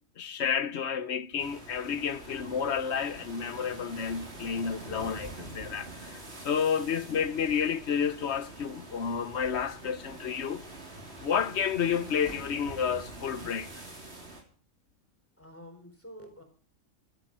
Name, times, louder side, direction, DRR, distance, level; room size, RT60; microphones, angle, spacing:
voice 1, 0.2-10.6 11.2-13.7, left 7 dB, 60° left, 1.0 m, -30 dB
sound 1, 1.4-14.4, right 2 dB, 50° right, 3.9 m, -45 dB
voice 2, 15.4-16.4, equal, 10° left, 4.0 m, -48 dB
12.5 x 11.5 x 7.5 m
omnidirectional pair, 1.4 m